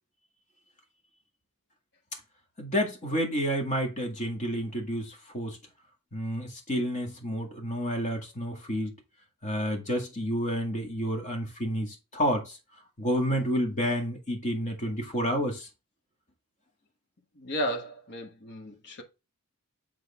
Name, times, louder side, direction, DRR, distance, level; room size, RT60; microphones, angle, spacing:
voice 1, 2.6-5.6 6.1-9.0 9.4-12.6 13.0-15.7, equal, 35° left, 1.9 m, -30 dB
voice 2, 17.4-19.0, equal, 50° left, 1.3 m, -34 dB
7.8 x 3.7 x 3.6 m
head